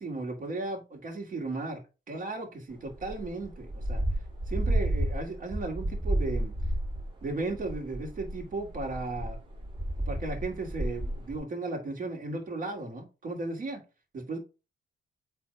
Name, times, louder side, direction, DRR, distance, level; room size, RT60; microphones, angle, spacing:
voice 1, 0.0-1.8 2.1-4.0 4.5-6.5 7.2-9.4 10.1-13.8 14.1-14.4, right 2 dB, 45° right, 2.4 m, -35 dB
sound 1, 2.9-11.4, right 1 dB, 25° right, 2.3 m, -32 dB
8.6 x 3.4 x 4.6 m
cardioid pair, 155°, 19 cm